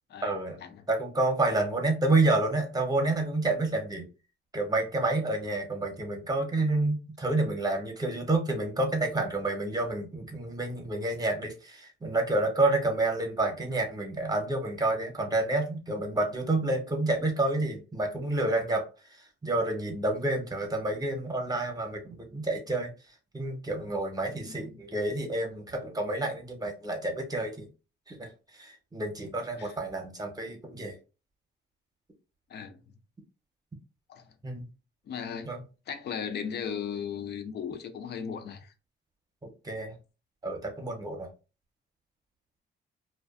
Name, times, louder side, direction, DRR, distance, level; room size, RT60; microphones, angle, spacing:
voice 1, 0.2-0.6 0.9-4.1 4.5-18.8 19.4-22.9 23.3-27.7 28.1-28.3 28.6-30.9 34.4-34.6 35.5-35.6 39.4-40.0 40.4-41.3, right 2 dB, 20° right, 0.8 m, -29 dB
voice 2, 32.5-32.8 34.1-34.3 35.1-35.6 35.9-38.7, left 7 dB, 55° left, 0.5 m, -37 dB
2.5 x 2.2 x 2.4 m
cardioid pair, 90°, 20 cm